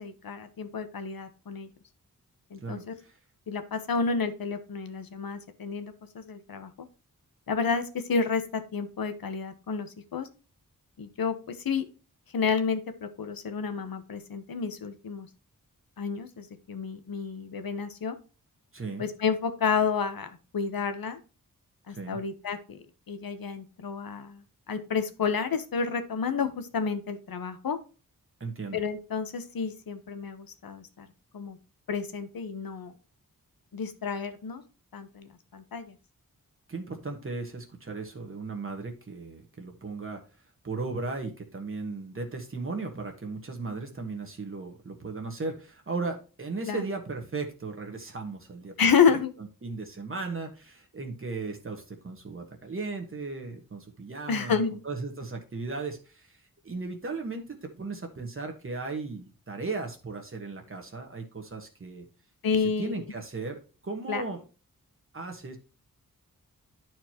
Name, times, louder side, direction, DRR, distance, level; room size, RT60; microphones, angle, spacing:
voice 1, 0.0-1.7 2.5-2.9 3.5-6.7 7.5-10.3 11.0-11.8 12.3-15.3 16.0-18.2 19.0-21.2 21.9-22.8 23.1-27.8 28.7-31.1 31.3-31.6 31.9-32.9 33.7-34.6 34.9-35.9 46.7-46.8 48.8-49.3 54.3-54.7 62.4-62.9 64.1-64.2, left 6 dB, 90° left, 9 dB, 1.1 m, -30 dB
voice 2, 2.6-3.2 18.7-19.0 21.9-22.2 28.4-28.8 36.7-40.2 40.6-49.2 49.6-62.0 62.8-64.4 65.1-65.6, right 3 dB, 40° right, 3 dB, 1.3 m, -36 dB
11.0 x 4.6 x 2.9 m, 0.33 s
wide cardioid pair, 125°, 34 cm